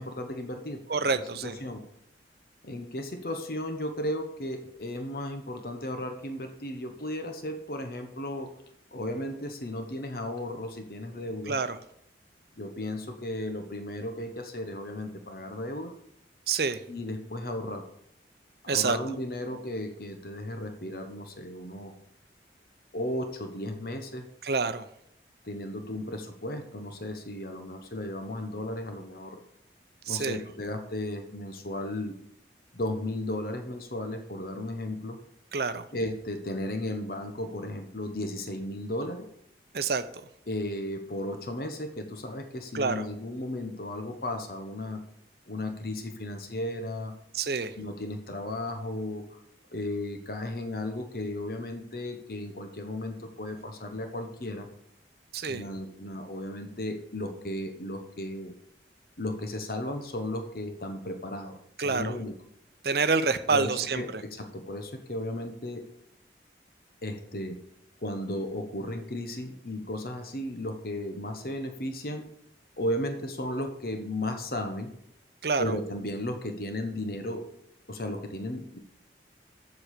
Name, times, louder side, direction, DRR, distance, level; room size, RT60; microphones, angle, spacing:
voice 1, 0.0-0.8 1.2-1.8 2.6-8.5 8.9-11.6 12.6-15.9 16.9-17.8 18.6-21.9 22.9-24.3 25.4-29.4 30.1-32.1 32.7-35.2 35.9-39.3 40.5-45.0 45.5-47.1 47.8-49.4 49.7-54.7 55.5-58.5 59.2-61.6 61.8-62.3 63.5-65.9 67.0-67.6 68.0-72.3 72.8-74.9 75.6-77.5 77.9-78.8, left 1 dB, 55° left, 6 dB, 1.1 m, -35 dB
voice 2, 0.9-1.6 11.5-11.8 16.5-16.8 18.7-19.0 24.4-24.8 30.1-30.4 35.5-35.8 39.7-40.1 42.7-43.1 47.3-47.7 55.3-55.6 61.8-62.2 62.8-64.2 75.4-75.8, right 4 dB, 60° right, 12 dB, 0.7 m, -27 dB
7.5 x 6.3 x 6.7 m, 0.74 s
head